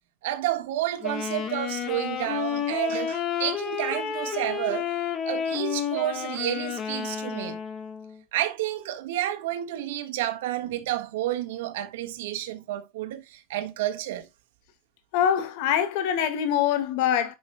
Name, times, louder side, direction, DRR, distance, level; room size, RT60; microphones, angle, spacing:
voice 1, 0.2-4.9 5.2-7.6 8.3-14.3, right 14 dB, 85° right, 1.6 m, -30 dB
Wind instrument woodwind instrument, 1.0-8.2, left 8 dB, 35° left, 1.9 m, -31 dB
voice 2, 15.1-17.3, left 9 dB, 65° left, 1.8 m, -24 dB
10.0 x 5.6 x 2.3 m
supercardioid pair, 150°, 0 cm